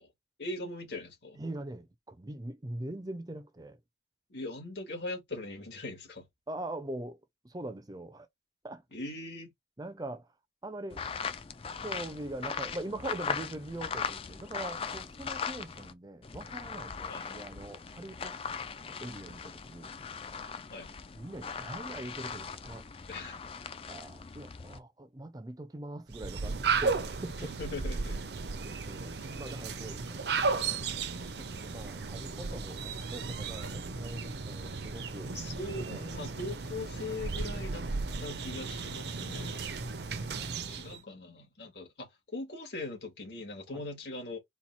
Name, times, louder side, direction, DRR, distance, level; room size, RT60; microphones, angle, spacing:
voice 1, 0.4-1.4 4.3-6.3 8.9-9.5 17.1-17.3 20.7-20.9 23.1-23.4 27.4-28.2 35.3-37.9 38.2-39.8 40.7-44.4, left 2 dB, 70° left, 2.0 m, -40 dB
voice 2, 1.4-3.8 6.5-7.2 7.4-8.3 8.6-8.8 9.8-10.3 10.6-11.0 11.8-19.9 21.1-22.9 23.9-27.5 28.6-30.2 30.5-30.8 31.5-35.3 35.9-36.0 39.9-41.0 41.6-41.7 43.7-43.8, right 1 dB, 20° right, 0.5 m, -42 dB
sound 1, 10.9-15.9 16.2-24.8, left 6 dB, 30° left, 0.4 m, -39 dB
sound 2, 26.1-41.0, right 4 dB, 65° right, 0.7 m, -35 dB
4.3 x 2.3 x 4.2 m
head